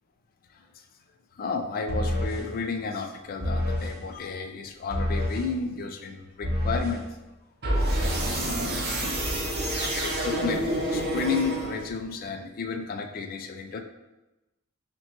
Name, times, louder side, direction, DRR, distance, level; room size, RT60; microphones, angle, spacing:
voice 1, 1.4-7.1 8.4-9.2 9.5-13.8, left 4 dB, 40° left, 6 dB, 0.3 m, -32 dB
sound 1, 1.9-2.4 3.4-3.9 4.9-5.5 6.4-7.0 7.6-12.0, equal, 45° right, 0.8 m, -27 dB
5.6 x 2.2 x 2.8 m, 1.0 s
head